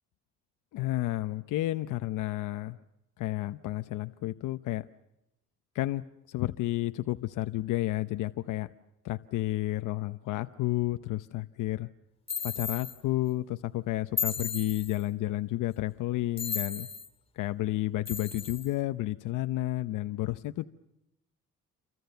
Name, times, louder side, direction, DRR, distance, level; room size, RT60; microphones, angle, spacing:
voice 1, 0.7-2.8 3.2-4.9 5.7-8.7 9.0-11.9 12.4-16.9 17.3-20.6, left 16 dB, 85° left, 10 dB, 0.9 m, -31 dB
sound 1, 12.3-13.0 14.2-15.0 16.4-17.1 18.1-18.7, left 6 dB, 20° left, 2.8 m, -34 dB
29.0 x 25.5 x 6.9 m, 0.87 s
cardioid pair, 120°, 30 cm